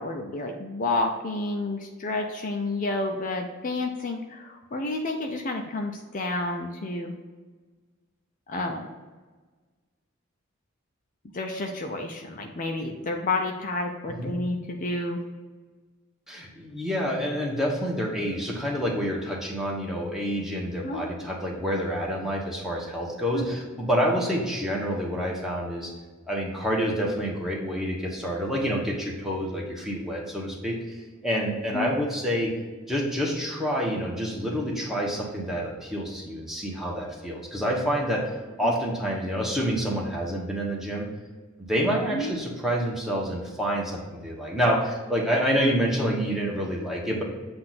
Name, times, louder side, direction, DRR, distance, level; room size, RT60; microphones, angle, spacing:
voice 1, 0.0-7.2 8.5-8.9 11.3-15.2 20.8-21.0 23.3-23.5 31.7-31.9 38.6-38.7 42.1-42.3, left 2 dB, 40° left, 2 dB, 0.6 m, -30 dB
voice 2, 16.3-25.9 26.3-31.0 31.2-32.5 32.9-38.3 38.6-41.1 41.6-47.2, equal, ahead, -3 dB, 1.1 m, -28 dB
7.6 x 2.6 x 5.9 m, 1.4 s
head